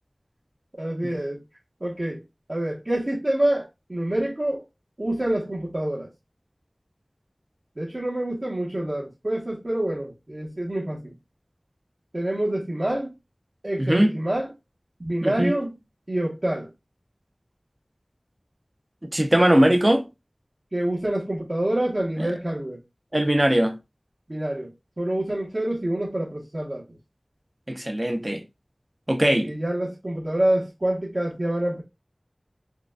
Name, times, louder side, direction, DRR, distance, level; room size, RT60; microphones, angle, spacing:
voice 1, 0.8-1.4 1.8-2.2 2.5-4.6 5.0-6.1 7.8-11.0 12.1-13.1 13.6-14.5 15.0-15.7 16.1-16.7 20.7-22.8 24.3-24.7 25.0-26.8 29.3-31.8, right 1 dB, 50° right, 1.0 m, -26 dB
voice 2, 13.8-14.2 15.2-15.5 19.1-20.0 23.1-23.8 27.7-28.4 29.1-29.5, right 1 dB, 30° right, 0.7 m, -20 dB
4.8 x 2.3 x 2.3 m
wide cardioid pair, 40°, 0 cm